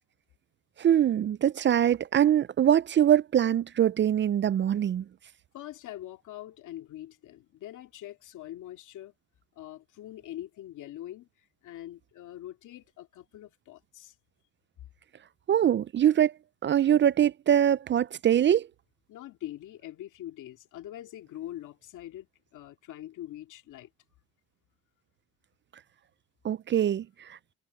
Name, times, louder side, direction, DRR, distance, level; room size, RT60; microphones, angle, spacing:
voice 1, 0.8-5.0 15.5-16.3 16.6-18.7 26.4-27.4, right 10 dB, 40° right, 0.4 m, -23 dB
voice 2, 5.5-9.1 9.6-14.1 19.1-22.3 22.5-23.9, left 13 dB, 80° left, 2.4 m, -43 dB
cardioid pair, 90°, 30 cm